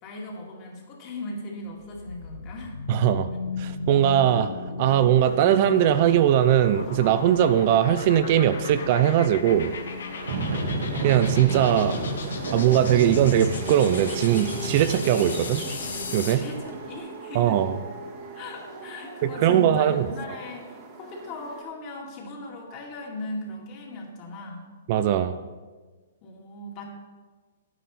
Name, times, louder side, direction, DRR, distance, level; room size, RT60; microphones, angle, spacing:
voice 1, 0.0-2.8 10.4-10.8 16.2-17.6 18.3-24.7 26.2-26.9, left 2 dB, 30° left, 0 dB, 2.2 m, -38 dB
sound 1, 1.7-16.5, left 5 dB, 80° left, 1.2 m, -36 dB
voice 2, 2.9-3.3 3.6-4.5 4.8-9.7 11.0-12.0 12.5-15.6 16.1-16.4 17.3-17.8 19.2-20.1 24.9-25.4, right 10 dB, 40° right, 11 dB, 0.5 m, -20 dB
sound 2, 5.1-21.6, right 3 dB, 25° right, 1.4 m, -43 dB
sound 3, 10.1-20.7, right 3 dB, 75° right, 1.9 m, -34 dB
10.5 x 9.0 x 4.3 m, 1.4 s
hypercardioid pair, 150°, 0 cm